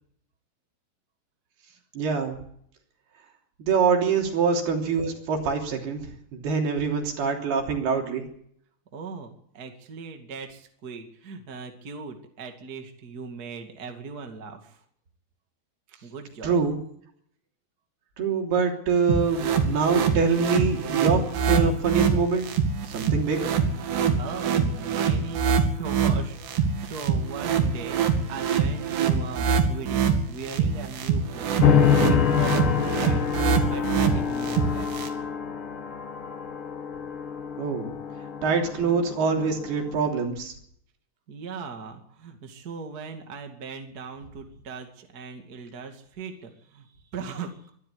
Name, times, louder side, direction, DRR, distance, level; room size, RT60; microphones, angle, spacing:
voice 1, 1.9-2.4 3.6-8.3 16.4-16.8 18.2-22.5 22.9-23.5 37.6-37.9 38.4-40.5, right 5 dB, 70° right, 2 dB, 5.1 m, -25 dB
voice 2, 8.9-14.8 15.9-16.6 24.2-31.7 32.1-33.2 33.6-34.9 41.3-47.7, right 5 dB, 30° right, 4 dB, 2.2 m, -39 dB
sound 1, 19.1-35.1, right 6 dB, 85° right, 4.6 m, -25 dB
sound 2, 31.6-40.0, left 7 dB, 75° left, 1.2 m, -26 dB
23.5 x 13.0 x 8.6 m, 0.68 s
omnidirectional pair, 4.7 m